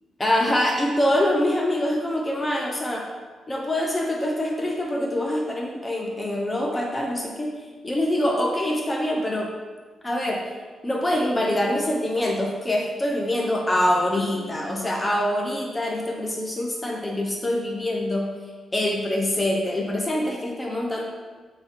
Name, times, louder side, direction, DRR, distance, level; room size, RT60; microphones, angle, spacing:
voice 1, 0.2-3.1 3.5-9.5 10.0-10.4 10.8-18.3 18.7-21.0, left 1 dB, 25° left, 0 dB, 0.5 m, -25 dB
3.0 x 2.8 x 3.7 m, 1.4 s
supercardioid pair, 55°, 0 cm